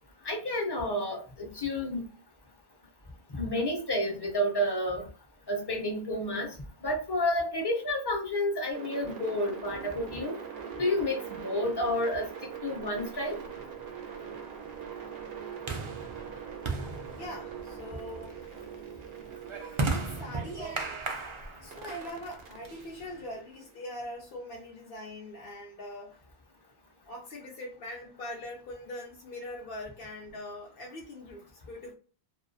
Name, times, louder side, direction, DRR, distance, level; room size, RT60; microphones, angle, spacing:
voice 1, 0.2-2.0 3.3-5.1 5.5-6.5 6.8-10.4 10.8-12.3 12.6-13.4, left 1 dB, 30° left, 0.5 m, -30 dB
sound 1, 8.7-21.1 21.7-23.8, right 7 dB, 70° right, 0.8 m, -43 dB
sound 2, 13.0-23.3, right 3 dB, 50° right, 0.3 m, -38 dB
voice 2, 17.1-18.6 19.9-21.0 21.3-26.2 27.1-31.9, left 1 dB, 65° left, 0.7 m, -42 dB
2.3 x 2.2 x 2.5 m
omnidirectional pair, 1.1 m